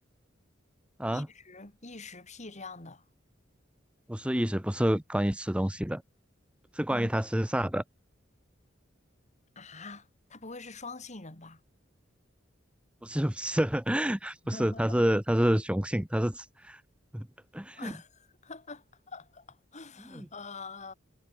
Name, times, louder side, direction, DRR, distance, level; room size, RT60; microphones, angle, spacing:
voice 1, 1.1-3.0 6.9-7.1 9.6-11.6 14.5-15.0 17.7-20.9, left 3 dB, 40° left, 3.8 m, -45 dB
voice 2, 4.1-6.0 6.7-7.8 13.0-16.8 17.1-17.3 17.5-17.9 20.1-20.3, equal, 5° right, 1.0 m, -28 dB
head